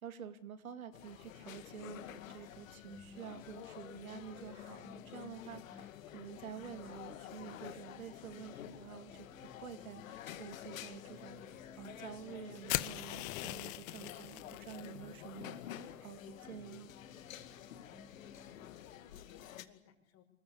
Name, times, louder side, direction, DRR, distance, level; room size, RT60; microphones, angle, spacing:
voice 1, 0.0-11.4 11.8-16.9, right 8 dB, 85° right, 10 dB, 2.5 m, -49 dB
sound 1, 0.9-19.6, left 11 dB, 75° left, 2.4 m, -50 dB
sound 2, 2.0-18.7, left 2 dB, 5° left, 3.9 m, -60 dB
sound 3, 12.7-14.9, left 20 dB, 55° left, 1.4 m, -39 dB
voice 2, 17.8-20.2, left 8 dB, 35° left, 7 dB, 5.4 m, -62 dB
25.5 x 22.0 x 8.6 m, 0.84 s
hypercardioid pair, 105°, 41 cm